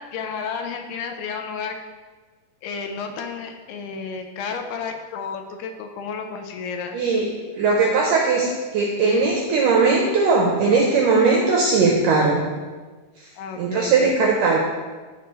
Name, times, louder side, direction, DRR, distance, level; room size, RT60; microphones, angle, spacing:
voice 1, 0.0-1.8 2.6-7.0 13.4-14.1, left 5 dB, 80° left, 5 dB, 2.5 m, -32 dB
voice 2, 6.9-12.4 13.6-14.6, right 4 dB, 80° right, -1 dB, 1.9 m, -19 dB
14.0 x 4.8 x 3.1 m, 1.4 s
omnidirectional pair, 4.8 m